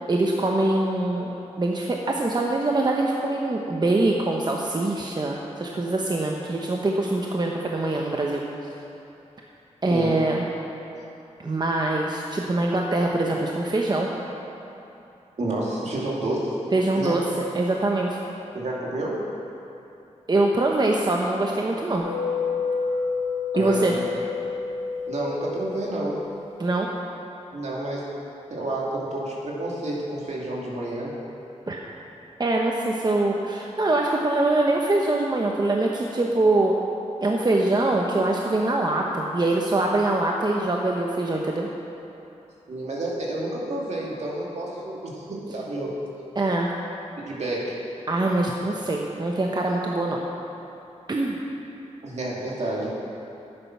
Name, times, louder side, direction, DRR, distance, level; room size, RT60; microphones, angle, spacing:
voice 1, 0.1-8.4 9.8-10.5 11.4-14.1 16.7-17.2 17.5-18.2 20.3-22.1 23.6-23.9 26.6-26.9 31.7-31.8 32.4-36.7 37.2-41.7 46.3-46.7 48.1-50.2 51.1-51.4, right 2 dB, 35° right, -1 dB, 0.9 m, -23 dB
voice 2, 15.4-16.6 17.0-17.2 18.5-19.2 23.5-24.1 25.1-26.2 27.5-28.1 28.5-31.1 42.7-45.9 47.3-47.8 52.0-52.9, right 1 dB, 65° right, -4 dB, 2.5 m, -29 dB
sound 1, 22.0-26.3, left 4 dB, 85° left, 2.7 m, -29 dB
11.0 x 8.8 x 6.0 m, 2.9 s
cardioid pair, 70°, 12 cm